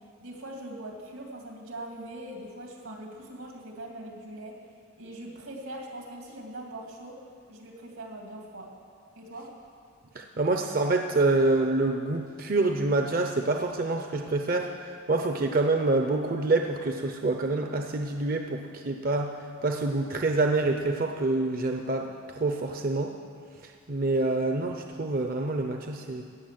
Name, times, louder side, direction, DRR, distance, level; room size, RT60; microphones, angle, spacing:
voice 1, 0.2-4.6 5.0-7.2 7.5-8.7 9.2-9.5, right 1 dB, 85° right, 0 dB, 2.8 m, -41 dB
voice 2, 10.2-14.7 15.1-19.3 19.6-23.1 23.6-26.2, right 2 dB, 40° right, 4 dB, 0.6 m, -26 dB
16.5 x 6.8 x 9.2 m, 2.4 s
head